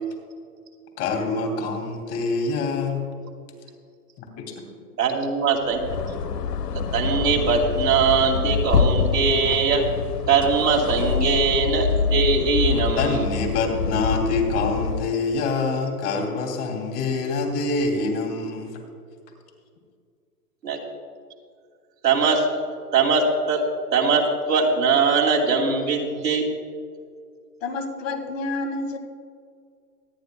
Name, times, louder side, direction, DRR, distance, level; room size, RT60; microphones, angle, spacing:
voice 1, 1.0-3.1 4.2-4.3 13.0-18.8, left 3 dB, 30° left, 1 dB, 2.7 m, -25 dB
voice 2, 5.0-6.2 6.9-9.8 10.3-13.2 20.6-20.8 22.0-22.4 22.9-23.6 23.9-26.5, right 5 dB, 90° right, -1 dB, 2.7 m, -21 dB
sound 1, 5.6-15.2, left 5 dB, 85° left, 0.9 m, -25 dB
voice 3, 27.6-29.0, left 2 dB, 55° left, 5 dB, 1.8 m, -29 dB
24.5 x 9.6 x 2.2 m, 2.2 s
hypercardioid pair, 145°, 47 cm